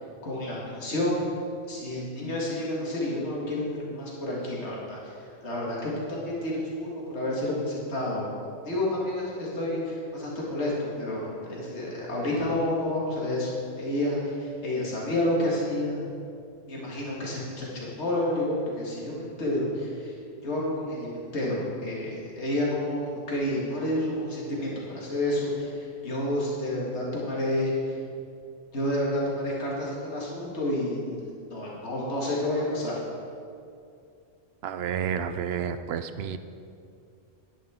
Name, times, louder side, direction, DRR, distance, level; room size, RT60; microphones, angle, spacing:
voice 1, 0.2-1.3 1.7-5.1 5.4-16.1 16.7-20.1 20.4-27.9 28.7-31.3 31.5-32.9, left 1 dB, 70° left, -4 dB, 2.2 m, -30 dB
voice 2, 34.6-36.4, right 8 dB, 65° right, 11 dB, 0.7 m, -30 dB
11.5 x 10.0 x 3.7 m, 2.4 s
omnidirectional pair, 1.2 m